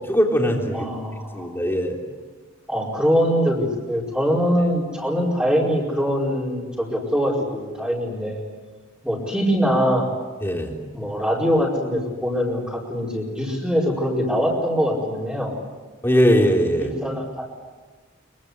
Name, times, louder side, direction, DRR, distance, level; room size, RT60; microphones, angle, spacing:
voice 1, 0.1-0.9 1.3-2.0 10.4-10.7 16.0-16.9, equal, 10° left, 0 dB, 3.6 m, -20 dB
voice 2, 0.7-1.5 2.7-8.4 9.0-10.1 10.9-15.6 16.8-17.4, equal, 5° right, -4 dB, 4.8 m, -23 dB
24.5 x 24.0 x 8.2 m, 1.3 s
head